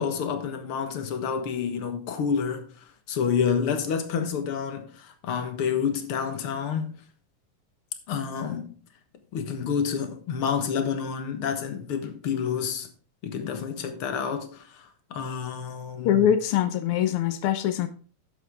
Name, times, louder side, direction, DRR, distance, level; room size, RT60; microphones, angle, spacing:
voice 1, 0.0-7.0 8.1-8.7 9.3-12.9 13.2-16.3, left 7 dB, 55° left, 1.8 m, -29 dB
voice 2, 16.0-17.9, left 10 dB, 90° left, 1.2 m, -23 dB
11.5 x 8.4 x 3.5 m
omnidirectional pair, 3.7 m